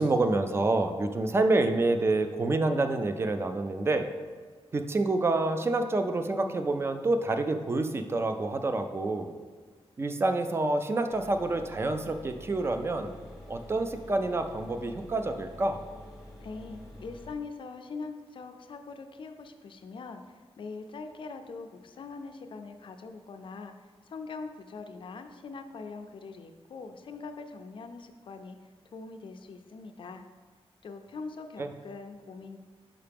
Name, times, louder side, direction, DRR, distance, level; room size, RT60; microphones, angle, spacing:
voice 1, 0.0-4.1 4.7-9.3 10.0-13.1 13.5-15.8 31.6-31.7, right 2 dB, 25° right, 7 dB, 0.3 m, -27 dB
sound 1, 11.1-17.3, left 1 dB, 5° right, 1.0 m, -48 dB
voice 2, 16.4-28.6 28.9-30.2 30.8-32.6, left 4 dB, 55° left, 7 dB, 0.4 m, -42 dB
5.6 x 4.9 x 3.4 m, 1.5 s
wide cardioid pair, 175°, 10 cm